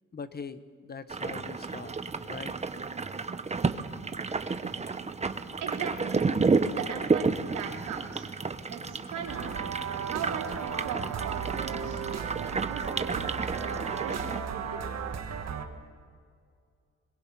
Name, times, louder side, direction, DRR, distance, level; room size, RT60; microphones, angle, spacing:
voice 1, 0.1-1.9 2.2-2.5, left 5 dB, 30° left, 12 dB, 1.2 m, -41 dB
sound 1, 1.1-14.4, right 4 dB, 20° right, 1.0 m, -31 dB
voice 2, 5.6-6.2 6.5-8.3 8.7-9.5 10.0-12.0 12.4-14.8, right 7 dB, 85° right, 1 dB, 3.4 m, -39 dB
sound 2, 9.3-15.7, right 7 dB, 60° right, 1.9 m, -35 dB
26.5 x 22.0 x 5.6 m, 2.2 s
cardioid pair, 90°, 30 cm